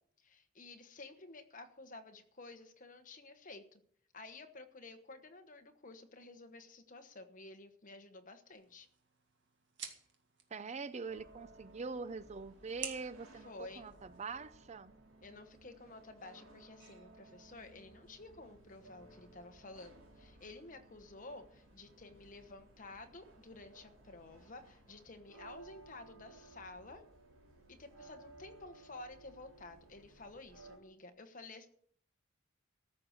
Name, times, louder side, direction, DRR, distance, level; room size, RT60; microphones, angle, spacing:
voice 1, 0.2-3.8 4.1-8.9 13.4-13.9 15.2-27.0 27.8-31.7, left 2 dB, 40° left, 7 dB, 1.2 m, -52 dB
sound 1, 8.5-14.5, right 7 dB, 60° right, 1.9 m, -52 dB
voice 2, 10.5-13.5 13.8-14.9, right 4 dB, 35° right, 15 dB, 0.4 m, -43 dB
sound 2, 11.1-30.8, right 2 dB, 80° right, 3.2 m, -59 dB
14.0 x 6.5 x 7.9 m, 0.64 s
head